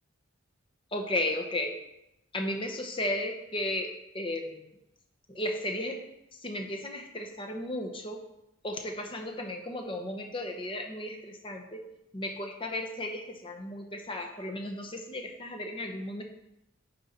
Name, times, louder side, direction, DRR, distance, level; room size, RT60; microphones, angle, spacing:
voice 1, 0.9-1.8 2.3-4.7 5.3-6.0 6.3-8.2 8.6-11.8 12.1-16.2, left 1 dB, 25° left, 3 dB, 0.8 m, -34 dB
9.4 x 4.4 x 3.8 m, 0.87 s
head